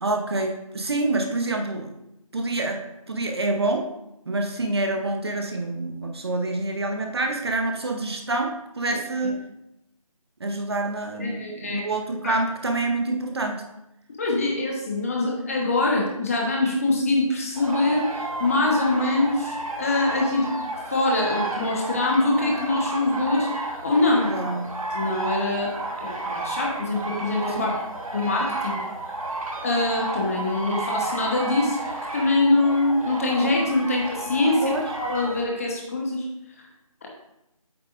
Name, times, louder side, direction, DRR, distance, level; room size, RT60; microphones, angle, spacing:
voice 1, 0.0-1.9 2.3-3.9 4.3-9.4 10.4-13.6 24.2-24.7 27.5-27.7 34.6-34.9, right 2 dB, 45° right, 3 dB, 0.9 m, -27 dB
voice 2, 11.2-11.9 12.2-12.4 14.2-23.5 23.8-24.3 24.9-27.8 28.1-28.8 29.6-31.8 32.1-36.3 37.0-37.1, left 2 dB, 25° left, -1 dB, 1.2 m, -24 dB
sound 1, 17.6-35.5, right 2 dB, 70° right, 1.3 m, -32 dB
8.2 x 6.6 x 2.6 m, 0.85 s
figure-of-eight pair, 165°, 18 cm